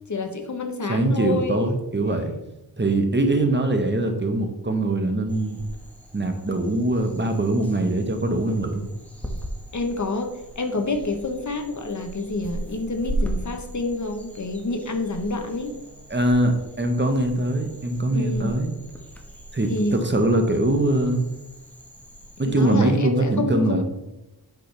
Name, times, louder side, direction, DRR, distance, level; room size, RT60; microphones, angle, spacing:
voice 1, 0.1-1.7 9.7-15.7 18.1-18.5 19.7-20.0 22.4-23.8, left 2 dB, 50° left, 6 dB, 1.0 m, -28 dB
voice 2, 0.8-2.3 2.8-5.6 6.1-8.9 16.1-18.7 19.5-21.2 22.4-23.8, right 1 dB, 30° right, 5 dB, 1.1 m, -22 dB
sound 1, 5.3-22.8, right 1 dB, 5° left, 1.3 m, -37 dB
8.4 x 6.2 x 3.3 m, 0.94 s
wide cardioid pair, 80°, 38 cm